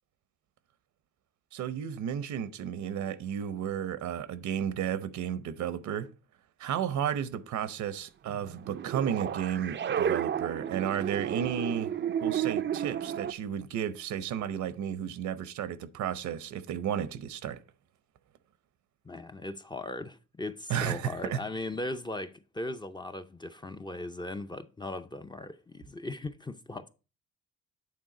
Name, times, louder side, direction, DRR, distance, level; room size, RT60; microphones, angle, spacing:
voice 1, 1.5-6.1 6.6-11.9 12.2-17.6 20.7-21.4, right 9 dB, 70° right, 0.8 m, -33 dB
sound 1, 8.3-13.3, right 9 dB, 40° right, 0.4 m, -32 dB
voice 2, 19.0-26.9, left 2 dB, 15° left, 0.5 m, -38 dB
8.7 x 3.6 x 4.8 m
cardioid pair, 90°, 30 cm